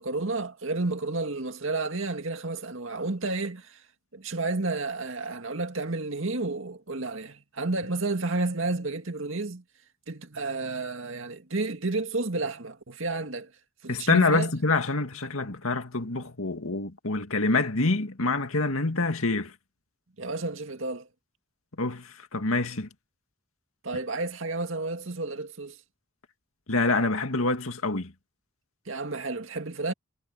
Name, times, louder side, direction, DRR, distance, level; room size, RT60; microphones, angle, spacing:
voice 1, 0.0-3.8 4.1-9.6 10.1-13.5 13.8-14.5 20.2-21.1 23.8-25.8 28.9-29.9, right 3 dB, 70° right, 2.1 m, -31 dB
voice 2, 13.9-19.5 21.8-22.9 26.7-28.1, left 3 dB, 85° left, 2.2 m, -26 dB
head